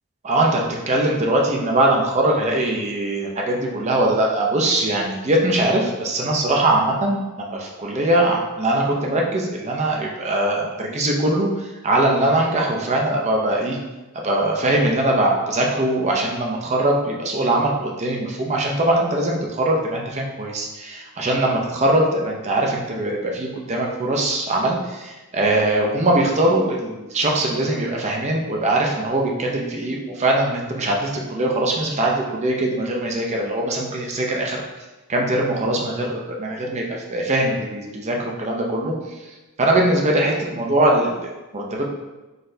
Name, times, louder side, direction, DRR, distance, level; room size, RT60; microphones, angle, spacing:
voice 1, 0.2-13.8 14.1-34.6 35.1-38.9 39.2-41.9, right 1 dB, 30° right, 0 dB, 0.5 m, -21 dB
3.9 x 3.2 x 2.6 m, 1.1 s
head